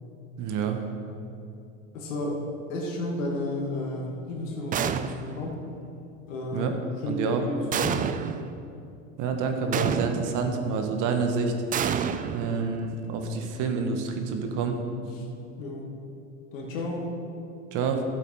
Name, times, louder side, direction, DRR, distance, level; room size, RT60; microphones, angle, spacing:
voice 1, 0.4-0.8 6.5-6.8 7.1-7.4 9.2-11.5 12.3-14.8 17.7-18.0, right 5 dB, 50° right, 5 dB, 1.6 m, -28 dB
voice 2, 1.9-2.4 2.7-5.6 6.3-8.0 8.3-8.4 15.1-15.2 15.6-15.9 16.5-17.1, left 1 dB, 80° left, -1 dB, 2.3 m, -32 dB
sound 1, 4.7-5.5 7.7-8.5 9.7-10.5 11.7-12.9, right 8 dB, 20° right, 0.4 m, -29 dB
13.0 x 7.7 x 4.8 m, 2.6 s
hypercardioid pair, 100°, 39 cm